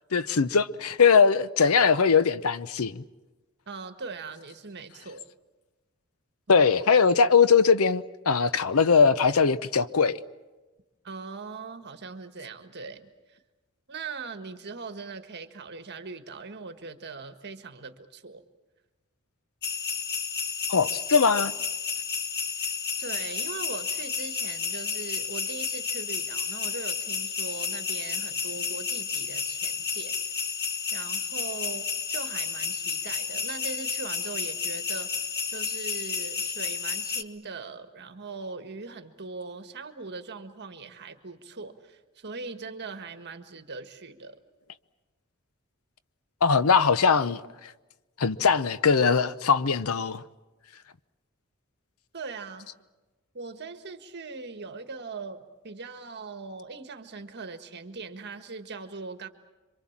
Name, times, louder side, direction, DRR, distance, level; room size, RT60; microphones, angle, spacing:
voice 1, 0.1-3.0 6.5-10.2 20.7-21.5 46.4-47.7 48.2-50.2, left 5 dB, 75° left, 0.7 m, -21 dB
voice 2, 3.7-5.2 6.5-6.7 11.0-13.4 13.9-18.4 23.0-30.2 30.9-44.4 52.1-52.7 53.3-59.3, right 4 dB, 50° right, 1.6 m, -40 dB
sound 1, 19.6-37.2, left 6 dB, 50° left, 1.2 m, -31 dB
27.0 x 24.5 x 7.3 m
head